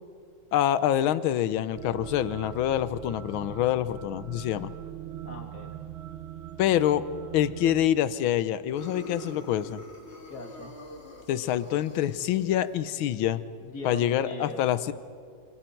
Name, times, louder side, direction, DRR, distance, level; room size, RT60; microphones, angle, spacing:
voice 1, 0.5-4.7 6.6-7.0 7.3-9.8 11.3-13.4 13.8-14.9, left 11 dB, 85° left, 15 dB, 1.6 m, -26 dB
sound 1, 1.7-7.9, right 11 dB, 80° right, 1.6 m, -41 dB
voice 2, 5.2-5.9 10.3-10.7 13.6-14.7, left 2 dB, 50° left, 1 dB, 3.0 m, -40 dB
sound 2, 8.7-13.0, left 1 dB, 35° left, 2.0 m, -45 dB
27.0 x 26.0 x 4.6 m, 2.2 s
omnidirectional pair, 2.2 m